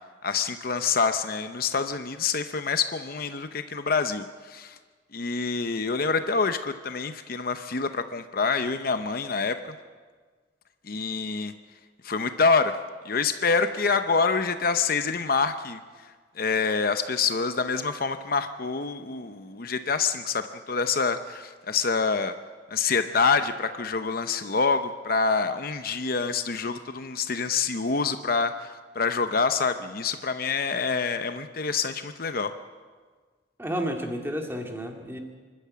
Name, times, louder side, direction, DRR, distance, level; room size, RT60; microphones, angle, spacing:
voice 1, 0.2-4.8 5.1-9.6 10.9-11.5 12.0-12.7 13.0-15.8 16.4-22.3 22.7-32.5, left 5 dB, 50° left, 9 dB, 0.8 m, -26 dB
voice 2, 33.6-35.2, equal, 15° right, 3 dB, 2.2 m, -31 dB
25.5 x 12.0 x 8.5 m, 1.5 s
head